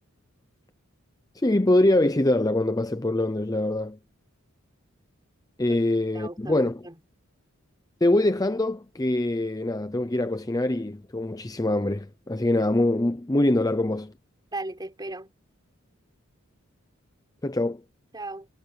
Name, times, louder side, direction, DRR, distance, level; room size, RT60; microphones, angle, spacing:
voice 1, 1.3-4.0 5.6-6.8 8.0-14.1 17.4-17.8, left 1 dB, 15° left, 0.7 m, -24 dB
voice 2, 6.1-7.0 14.5-15.3 18.1-18.5, right 2 dB, 20° right, 4.1 m, -36 dB
head